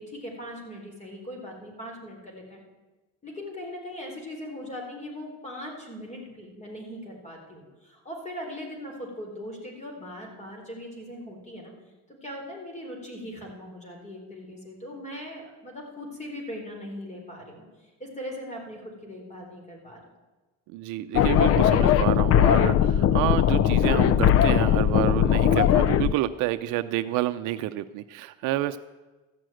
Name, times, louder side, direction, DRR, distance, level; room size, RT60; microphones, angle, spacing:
voice 1, 0.0-2.6 3.2-11.7 12.2-17.6 18.0-20.0, equal, 25° left, 0 dB, 4.1 m, -40 dB
voice 2, 20.7-28.8, right 15 dB, 80° right, 11 dB, 0.6 m, -29 dB
sound 1, 21.1-26.1, left 10 dB, 50° left, 0.5 m, -20 dB
14.0 x 6.3 x 9.1 m, 1.2 s
cardioid pair, 105°, 30 cm